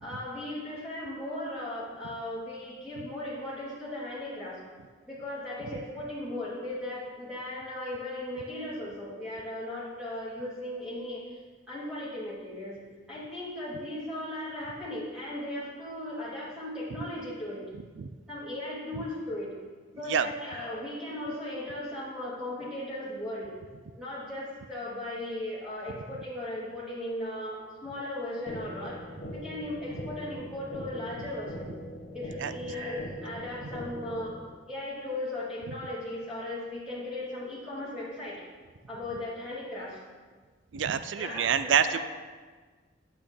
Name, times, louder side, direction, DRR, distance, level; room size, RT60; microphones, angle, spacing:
voice 1, 0.0-4.6 5.1-11.2 11.7-12.8 13.1-17.7 18.3-19.5 20.0-23.5 24.0-29.0 29.3-31.7 32.1-34.4 34.7-38.4 38.9-40.0 41.2-42.0, left 1 dB, 5° right, -11 dB, 2.7 m, -37 dB
sound 1, 28.5-34.5, equal, 55° left, 1.3 m, -41 dB
voice 2, 40.7-42.0, right 7 dB, 70° right, 12 dB, 0.4 m, -27 dB
10.5 x 8.2 x 3.5 m, 1.4 s
head